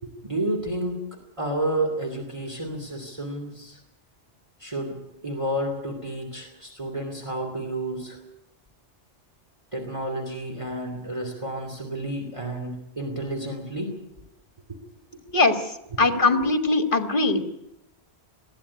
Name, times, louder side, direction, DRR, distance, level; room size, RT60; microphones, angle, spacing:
voice 1, 0.0-3.8 4.6-8.2 9.7-13.9 14.7-14.8 15.1-15.4 16.0-16.5, right 1 dB, 25° right, 2 dB, 2.9 m, -31 dB
voice 2, 15.3-15.7 16.0-17.4, left 3 dB, 45° left, 7 dB, 2.0 m, -21 dB
21.0 x 14.5 x 9.8 m, 0.89 s
omnidirectional pair, 1.2 m